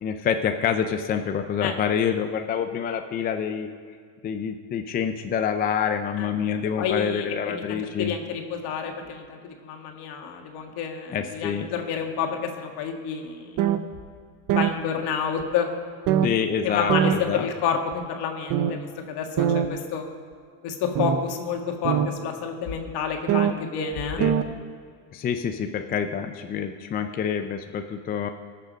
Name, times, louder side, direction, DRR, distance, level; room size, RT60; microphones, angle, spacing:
voice 1, 0.0-3.7 4.2-8.2 11.1-11.7 16.2-17.5 24.2-24.3 25.1-28.3, left 7 dB, 20° left, 6 dB, 0.4 m, -27 dB
voice 2, 6.8-13.6 14.5-15.7 16.2-16.3 16.6-20.1 20.6-24.2, left 7 dB, 55° left, 3 dB, 1.8 m, -29 dB
sound 1, 13.6-13.8 14.5-14.7 15.4-15.5 16.1-16.3 16.9-17.2 17.9-18.0 18.5-18.7 19.4-19.7 20.9-21.2 21.8-22.1 23.3-23.5 23.9-24.0 24.2-24.4, right 9 dB, 45° right, 0.8 m, -21 dB
19.0 x 6.6 x 5.1 m, 2.1 s
supercardioid pair, 130°, 48 cm